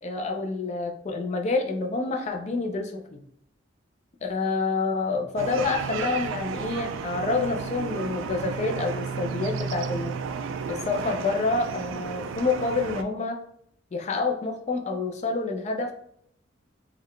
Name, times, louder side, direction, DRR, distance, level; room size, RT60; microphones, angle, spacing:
voice 1, 0.0-3.2 4.2-10.2 10.7-13.4 13.9-15.9, left 3 dB, 35° left, 4 dB, 0.4 m, -28 dB
sound 1, 5.4-13.0, right 6 dB, 90° right, 0.3 m, -33 dB
3.8 x 2.2 x 3.1 m, 0.67 s
head